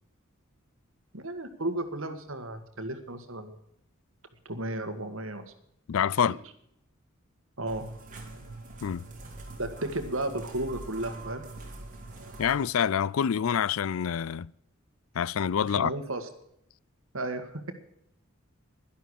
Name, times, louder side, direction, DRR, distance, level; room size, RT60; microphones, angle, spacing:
voice 1, 1.1-3.6 4.5-5.5 6.3-6.4 7.6-7.9 9.6-11.4 15.8-16.3 17.1-17.7, right 1 dB, 65° right, 1.9 m, -34 dB
voice 2, 5.9-6.4 8.8-9.1 12.4-14.5 15.1-15.9, left 8 dB, 75° left, 0.4 m, -26 dB
sound 1, 7.7-12.6, right 2 dB, 35° right, 3.2 m, -43 dB
11.5 x 11.5 x 6.5 m
head